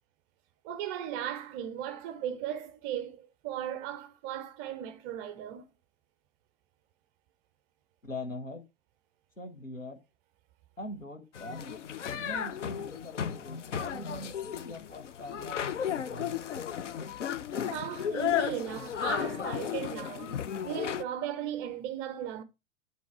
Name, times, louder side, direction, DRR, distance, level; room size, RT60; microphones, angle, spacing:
voice 1, 0.6-5.7 17.7-22.4, right 10 dB, 20° right, 0.4 m, -37 dB
voice 2, 8.0-8.6 9.4-10.0 10.8-11.8 12.1-16.4, left 1 dB, 90° left, 1.2 m, -42 dB
sound 1, 11.4-21.0, left 9 dB, 70° left, 0.7 m, -34 dB
9.2 x 3.3 x 4.7 m
figure-of-eight pair, 95°, 38 cm